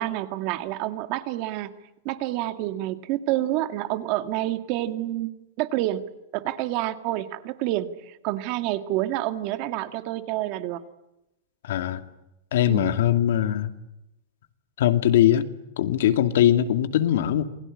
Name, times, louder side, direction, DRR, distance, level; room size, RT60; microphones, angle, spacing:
voice 1, 0.0-1.7 2.1-6.0 6.3-10.8 12.7-13.0, right 15 dB, 40° right, 10 dB, 1.9 m, -28 dB
voice 2, 11.6-12.0 12.5-13.7 14.8-15.5 15.8-17.4, left 11 dB, 70° left, 9 dB, 2.4 m, -21 dB
28.5 x 21.0 x 9.9 m, 0.90 s
supercardioid pair, 170°, 0 cm